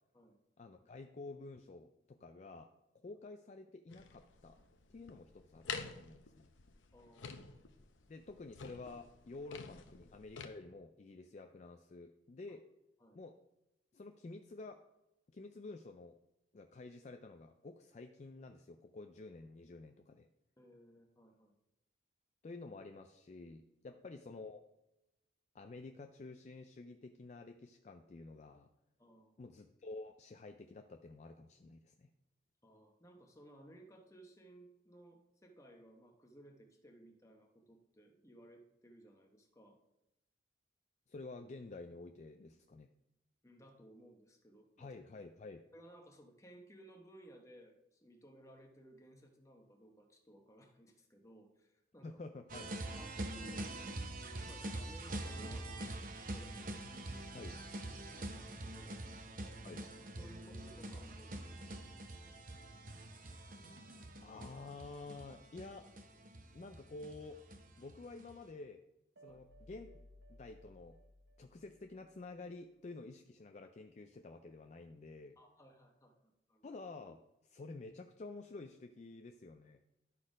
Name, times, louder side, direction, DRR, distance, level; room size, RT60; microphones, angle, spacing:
voice 1, 0.6-2.7 3.0-4.6 4.9-6.5 8.1-12.7 13.1-13.4 13.9-14.8 15.3-16.2 16.5-20.3 22.4-24.6 25.5-28.7 29.4-32.1 41.1-42.9 44.8-45.6 52.0-52.8 57.3-57.5 59.6-59.9 64.2-65.9 66.5-67.4 67.8-68.8 69.2-69.9 70.3-71.0 71.4-75.4 76.6-79.8, left 3 dB, 35° left, 6 dB, 0.3 m, -50 dB
sound 1, 3.9-10.5, left 5 dB, 85° left, 0.7 m, -49 dB
voice 2, 6.9-7.6 13.0-13.2 20.6-21.6 23.9-24.0 29.0-29.3 32.6-39.8 43.4-44.9 45.7-52.2 52.9-53.7 54.4-56.6 57.4-57.5 57.8-59.0 60.2-62.4 69.3-69.4 75.4-76.7, right 1 dB, 15° left, 2 dB, 0.9 m, -60 dB
sound 2, 52.5-68.4, right 1 dB, 45° right, 0.8 m, -45 dB
sound 3, 69.2-72.3, equal, 75° right, 1.0 m, -61 dB
12.0 x 4.2 x 4.9 m, 0.91 s
head